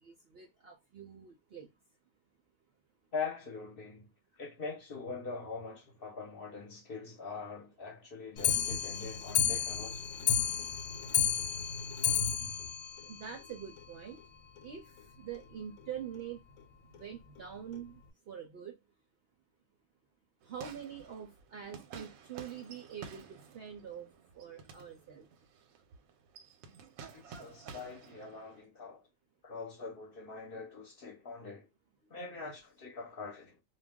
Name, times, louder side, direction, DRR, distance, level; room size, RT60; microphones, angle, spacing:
voice 1, 0.0-1.7 13.0-14.2 14.6-16.4 16.8-18.8 20.4-25.3 32.0-32.1, right 8 dB, 65° right, 0.6 m, -45 dB
voice 2, 3.1-4.1 4.3-10.1 27.1-29.1 29.4-31.7 32.1-33.6, left 4 dB, 50° left, 0.9 m, -43 dB
Clock, 8.4-13.9 14.2-14.3 14.6-14.7 15.0-15.1 15.3-15.4 16.1-16.2 16.9-17.0 17.7-17.8, left 8 dB, 80° left, 1.1 m, -32 dB
sound 1, 20.4-28.6, right 6 dB, 90° right, 1.0 m, -52 dB
2.4 x 2.2 x 3.4 m
omnidirectional pair, 1.4 m